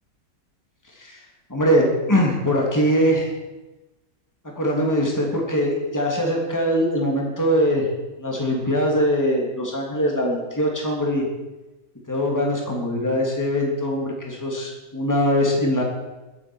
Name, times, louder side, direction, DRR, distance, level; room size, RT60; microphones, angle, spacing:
voice 1, 1.5-3.3 4.6-7.9 8.2-11.2 12.1-15.8, equal, 10° left, -1 dB, 3.0 m, -22 dB
22.0 x 8.5 x 6.4 m, 1.1 s
omnidirectional pair, 1.9 m